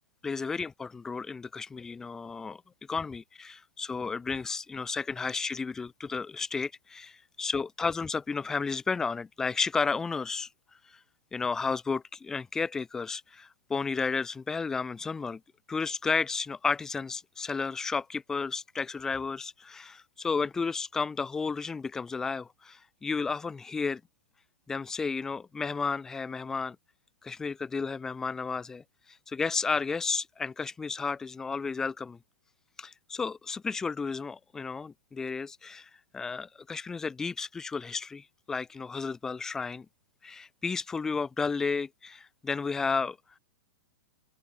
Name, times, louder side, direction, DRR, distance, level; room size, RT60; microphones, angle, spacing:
voice 1, 0.2-2.6 2.9-10.5 11.3-15.4 15.7-24.0 24.7-26.8 27.2-28.8 29.3-32.2 32.8-39.8 40.2-43.2, left 4 dB, 5° left, 1.5 m, -32 dB
open air
hypercardioid pair, 180°, 8 cm